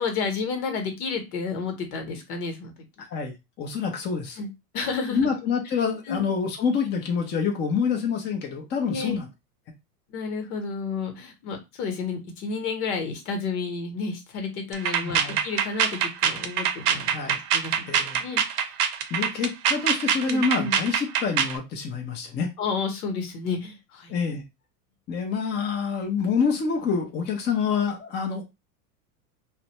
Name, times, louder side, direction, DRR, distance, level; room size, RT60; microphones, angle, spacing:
voice 1, 0.0-2.7 4.4-4.5 4.7-5.4 6.1-6.3 8.9-9.2 10.1-18.4 20.2-20.8 22.6-24.1, left 4 dB, 65° left, 5 dB, 1.1 m, -31 dB
voice 2, 3.0-4.4 5.1-9.3 15.0-15.4 17.1-17.4 17.9-18.2 19.1-22.5 24.1-24.4 25.1-28.4, left 5 dB, 25° left, 2 dB, 0.6 m, -27 dB
sound 1, 14.7-21.6, right 8 dB, 75° right, 0.7 m, -24 dB
2.4 x 2.1 x 2.9 m, 0.23 s
hypercardioid pair, 115°, 47 cm